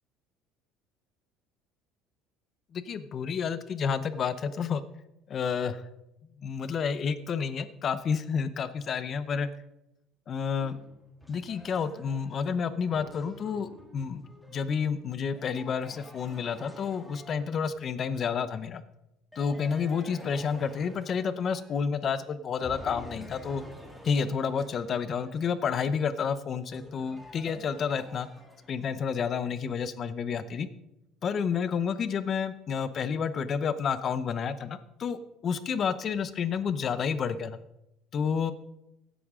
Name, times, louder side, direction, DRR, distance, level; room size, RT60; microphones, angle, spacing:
voice 1, 2.7-4.8 5.3-5.8 6.4-9.5 10.3-10.8 11.3-14.2 14.5-18.8 19.4-23.6 24.0-28.3 28.7-30.7 31.2-37.6 38.1-38.5, left 6 dB, 30° left, 14 dB, 0.7 m, -30 dB
sound 1, 10.6-18.0 19.3-22.2 22.6-29.0, equal, 5° left, 1.8 m, -49 dB
15.5 x 11.0 x 3.7 m, 0.88 s
cardioid pair, 160°, 0 cm